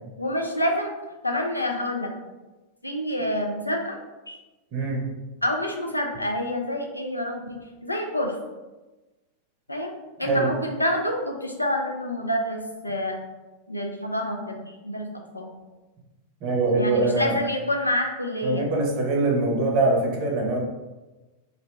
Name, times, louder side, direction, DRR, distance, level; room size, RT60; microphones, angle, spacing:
voice 1, 0.2-0.9 1.2-2.1 2.8-4.0 4.3-4.4 5.4-8.3 9.7-9.9 10.2-13.1 13.7-15.5 16.7-18.6, left 1 dB, 85° left, 2 dB, 0.3 m, -27 dB
voice 2, 4.7-5.0 10.2-10.5 16.4-17.3 18.4-20.6, right 2 dB, 40° right, 0 dB, 0.6 m, -23 dB
2.5 x 2.0 x 3.1 m, 1.1 s
figure-of-eight pair, 90°, 0 cm